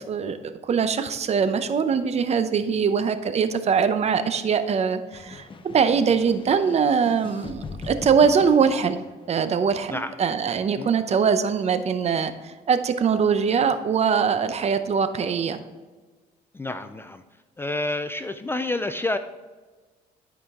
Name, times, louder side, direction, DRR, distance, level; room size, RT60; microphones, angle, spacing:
voice 1, 0.0-5.5 5.7-9.0 9.3-15.6, right 6 dB, 40° right, 10 dB, 0.7 m, -22 dB
sound 1, 5.1-9.4, left 3 dB, 30° left, 0.7 m, -40 dB
voice 2, 16.5-17.2 17.6-19.2, left 2 dB, 15° left, 10 dB, 0.4 m, -28 dB
11.5 x 5.1 x 3.6 m, 1.3 s
cardioid pair, 110°, 17 cm